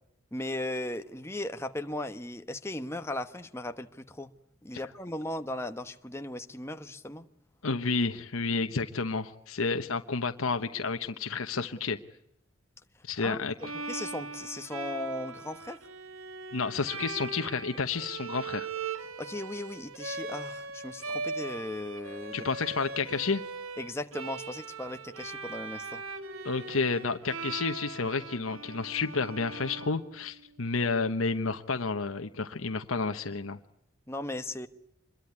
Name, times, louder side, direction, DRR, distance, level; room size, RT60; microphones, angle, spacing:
voice 1, 0.3-4.3 4.6-7.2 13.2-15.8 19.2-22.5 23.8-26.0 34.1-34.7, left 1 dB, 10° left, 1.1 m, -37 dB
voice 2, 7.6-12.0 13.0-13.7 16.5-18.7 22.3-23.4 26.4-33.6, left 4 dB, 80° left, 1.0 m, -30 dB
Bowed string instrument, 13.6-30.5, right 4 dB, 80° right, 1.8 m, -40 dB
26.5 x 22.0 x 9.6 m
head